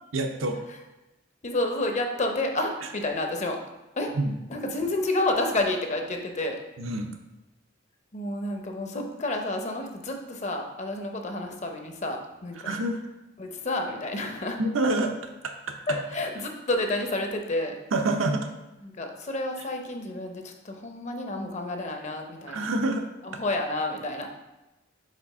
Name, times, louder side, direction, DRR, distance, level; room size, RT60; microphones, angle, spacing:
voice 1, 0.1-0.6 4.1-4.3 6.8-7.1 12.6-13.0 14.6-16.0 17.9-18.5 22.5-23.1, right 2 dB, 80° right, 5 dB, 0.7 m, -27 dB
voice 2, 1.4-3.6 4.0-4.1 4.5-6.6 8.1-12.6 13.4-14.6 15.9-17.7 18.8-22.7 23.2-24.3, left 2 dB, 35° left, 4 dB, 0.7 m, -30 dB
5.1 x 4.1 x 5.5 m, 1.0 s
head